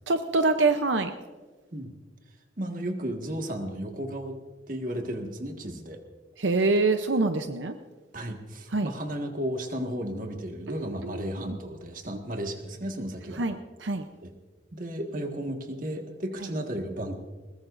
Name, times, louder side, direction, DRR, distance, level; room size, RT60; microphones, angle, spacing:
voice 1, 0.1-1.1 6.4-7.7 8.7-8.9 10.7-11.6 13.4-14.1, right 3 dB, 80° right, 7 dB, 0.7 m, -25 dB
voice 2, 2.6-4.4 4.7-6.0 8.1-13.4 14.2-14.3 14.7-17.2, right 1 dB, 45° right, 3 dB, 1.8 m, -34 dB
21.0 x 20.5 x 2.6 m, 1.3 s
head